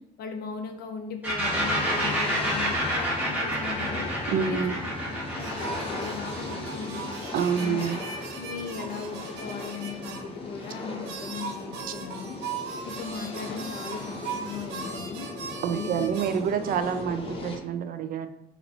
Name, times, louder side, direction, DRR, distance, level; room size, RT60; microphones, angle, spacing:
voice 1, 0.2-4.1 4.5-4.6 5.0-7.1 7.6-7.8 8.4-12.4 12.8-15.2 15.7-16.1, left 6 dB, 70° left, 6 dB, 0.7 m, -38 dB
sound 1, 1.2-8.8, right 1 dB, 10° right, 1.5 m, -30 dB
sound 2, 1.4-17.6, left 3 dB, 35° left, 1.1 m, -38 dB
voice 2, 4.3-4.8 7.3-8.0 15.6-18.3, right 7 dB, 55° right, 9 dB, 0.4 m, -27 dB
sound 3, 5.4-10.2 10.6-10.7 11.0-17.0, right 5 dB, 90° right, 0.7 m, -39 dB
4.0 x 2.8 x 4.3 m, 0.82 s
cardioid pair, 110°, 17 cm